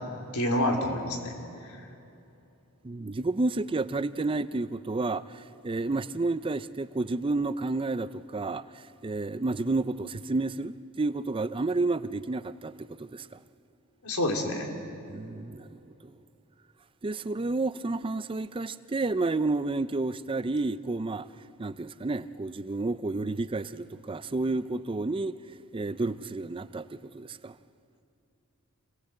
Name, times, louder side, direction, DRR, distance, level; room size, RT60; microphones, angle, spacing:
voice 1, 0.3-1.3 14.0-14.7, left 1 dB, 90° left, 3.4 m, -27 dB
voice 2, 2.8-13.4 15.1-15.7 16.0-16.2 17.0-21.3 21.6-27.6, right 3 dB, 25° right, 0.4 m, -31 dB
27.5 x 18.0 x 7.8 m
head